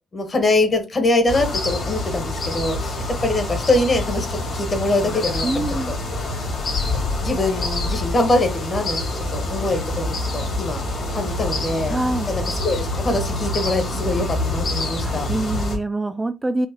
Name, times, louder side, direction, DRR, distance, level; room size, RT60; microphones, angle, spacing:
voice 1, 0.1-5.9 6.9-10.8 11.1-12.0 12.3-15.3, left 2 dB, 35° left, 6 dB, 1.1 m, -23 dB
sound 1, 1.3-15.8, left 2 dB, 55° left, 2.0 m, -26 dB
sound 2, 5.0-8.7, left 3 dB, 80° left, 1.9 m, -30 dB
voice 2, 5.4-5.9 11.9-12.3 15.0-16.7, right 2 dB, 20° right, 9 dB, 0.3 m, -25 dB
4.6 x 2.4 x 2.7 m, 0.26 s
cardioid pair, 90°, 0 cm